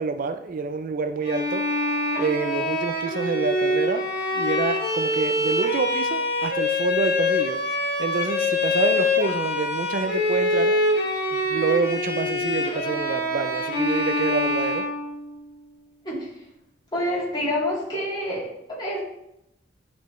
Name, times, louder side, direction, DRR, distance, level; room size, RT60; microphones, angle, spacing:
voice 1, 0.0-1.8 2.2-4.0 4.3-10.7 11.3-14.8, right 4 dB, 45° right, 9 dB, 0.4 m, -27 dB
Bowed string instrument, 1.2-15.5, left 2 dB, 60° left, 1.8 m, -25 dB
voice 2, 16.9-19.0, left 1 dB, 25° left, -6 dB, 3.2 m, -27 dB
10.0 x 5.1 x 3.1 m, 0.80 s
head